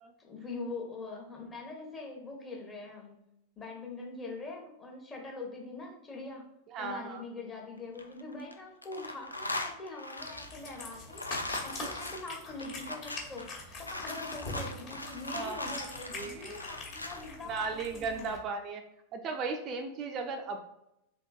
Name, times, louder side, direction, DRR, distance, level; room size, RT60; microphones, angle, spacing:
voice 1, 0.2-3.2 3.6-6.4 6.8-11.2 11.6-18.4, left 3 dB, 20° left, 0 dB, 0.9 m, -43 dB
voice 2, 6.7-7.2 15.3-15.9 16.1-16.5 17.5-18.8 19.1-20.6, right 4 dB, 35° right, 4 dB, 0.3 m, -36 dB
sound 1, 7.8-8.5 8.8-17.3, left 2 dB, 85° left, 0.3 m, -40 dB
Cat, 10.2-18.4, left 2 dB, 45° left, 1.2 m, -44 dB
3.6 x 3.4 x 2.3 m, 0.82 s
figure-of-eight pair, 90°, 0 cm